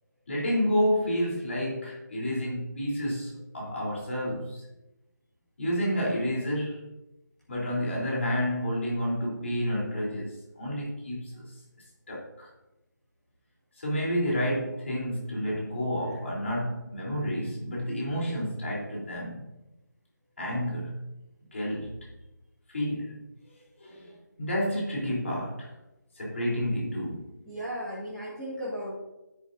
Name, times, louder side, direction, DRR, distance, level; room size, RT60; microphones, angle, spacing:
voice 1, 0.3-4.6 5.6-6.8 7.5-11.5 12.1-12.5 13.8-19.5 20.4-20.9 21.5-21.9 22.7-23.1 23.8-25.7 26.2-27.2, equal, 40° left, -4 dB, 3.7 m, -30 dB
voice 2, 27.4-29.0, equal, 5° left, -11 dB, 2.1 m, -36 dB
10.5 x 9.9 x 2.7 m, 0.98 s
figure-of-eight pair, 170°, 10 cm